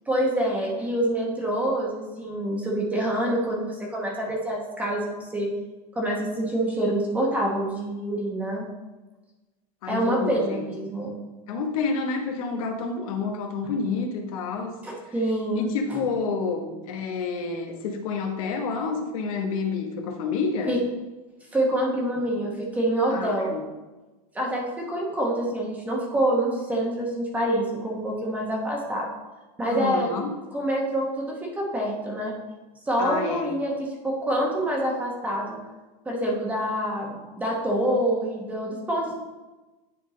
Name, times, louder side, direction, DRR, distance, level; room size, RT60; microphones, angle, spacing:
voice 1, 0.1-5.5 5.9-8.7 9.9-11.1 14.8-16.0 20.7-20.8 21.5-23.5 24.3-29.1 29.6-30.1 30.5-32.3 32.9-35.6 36.0-39.1, right 1 dB, 5° right, -2 dB, 1.0 m, -26 dB
voice 2, 9.8-10.9 11.5-14.8 15.5-20.7 23.1-23.6 29.7-30.3 33.0-33.5, left 4 dB, 60° left, 3 dB, 1.1 m, -29 dB
9.8 x 3.7 x 3.8 m, 1.2 s
supercardioid pair, 165°, 20 cm